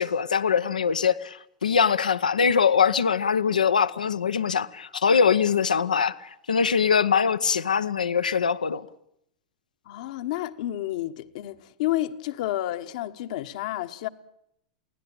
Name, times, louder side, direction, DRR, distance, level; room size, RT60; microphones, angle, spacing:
voice 1, 0.0-8.8, left 6 dB, 85° left, 0.9 m, -23 dB
voice 2, 9.8-14.1, left 14 dB, 60° left, 1.2 m, -30 dB
23.5 x 16.5 x 8.9 m
hypercardioid pair, 100°, 4 cm